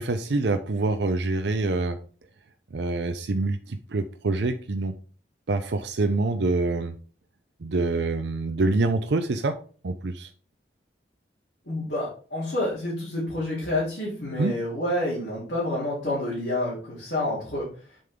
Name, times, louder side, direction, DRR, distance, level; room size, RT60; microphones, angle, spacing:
voice 1, 0.0-2.0 2.7-4.9 5.5-6.9 7.6-9.6 9.8-10.3 14.4-14.5, right 3 dB, 75° right, 7 dB, 0.6 m, -26 dB
voice 2, 11.6-17.7, left 1 dB, 60° left, -8 dB, 3.1 m, -28 dB
7.7 x 5.4 x 3.7 m, 0.40 s
head